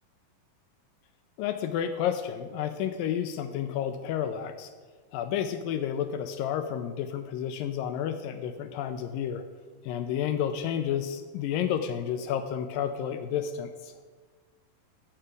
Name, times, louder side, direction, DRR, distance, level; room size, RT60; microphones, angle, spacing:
voice 1, 1.4-4.7 5.1-9.4 9.8-13.9, left 9 dB, 80° left, 8 dB, 2.2 m, -31 dB
13.5 x 5.8 x 8.2 m, 1.5 s
omnidirectional pair, 4.3 m